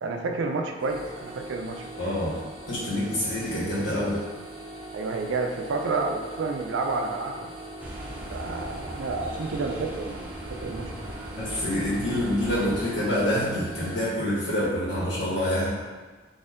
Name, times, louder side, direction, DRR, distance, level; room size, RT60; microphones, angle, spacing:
voice 1, 0.0-1.9 4.9-7.5 8.3-10.2 10.5-10.9, right 3 dB, 75° right, 3 dB, 0.4 m, -30 dB
sound 1, 0.8-14.1, right 2 dB, 25° right, 1.1 m, -42 dB
voice 2, 2.0-2.3 2.7-4.2 11.4-15.7, left 1 dB, 70° left, -8 dB, 1.4 m, -26 dB
sound 2, 7.8-12.8, equal, 10° right, 0.4 m, -38 dB
4.1 x 2.6 x 2.5 m, 1.4 s
head